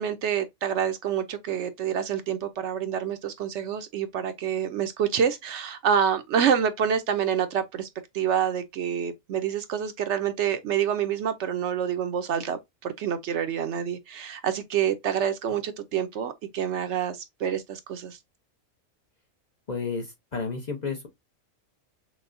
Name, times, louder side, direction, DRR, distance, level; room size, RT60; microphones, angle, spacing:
voice 1, 0.0-7.9 8.1-18.2, right 8 dB, 65° right, 0.8 m, -27 dB
voice 2, 19.7-21.1, left 4 dB, 45° left, 0.6 m, -31 dB
5.9 x 2.1 x 2.5 m
omnidirectional pair, 1.4 m